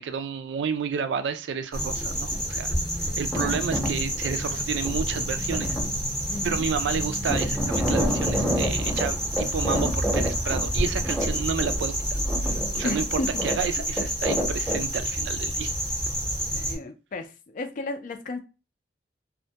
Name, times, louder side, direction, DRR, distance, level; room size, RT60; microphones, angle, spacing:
voice 1, 0.0-2.7 3.2-5.7 6.4-11.9 12.4-15.7, right 6 dB, 75° right, 0.3 m, -31 dB
sound 1, 1.7-16.7, equal, 5° left, 0.7 m, -27 dB
voice 2, 6.3-6.7 12.8-13.4 13.8-13.9 16.5-17.3 17.5-18.4, left 2 dB, 45° left, 0.4 m, -33 dB
2.1 x 2.1 x 2.7 m
head